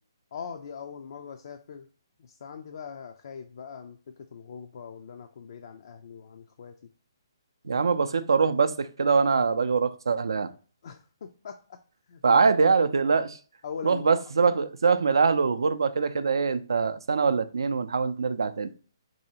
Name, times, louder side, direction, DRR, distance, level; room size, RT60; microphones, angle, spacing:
voice 1, 0.3-1.9 2.2-6.8 7.6-7.8 10.8-11.8 12.1-12.4 13.6-14.2, left 6 dB, 60° left, 0.3 m, -41 dB
voice 2, 7.6-10.5 12.2-13.4 13.8-18.7, right 5 dB, 75° right, 0.3 m, -23 dB
3.2 x 2.7 x 2.8 m
hypercardioid pair, 140°, 2 cm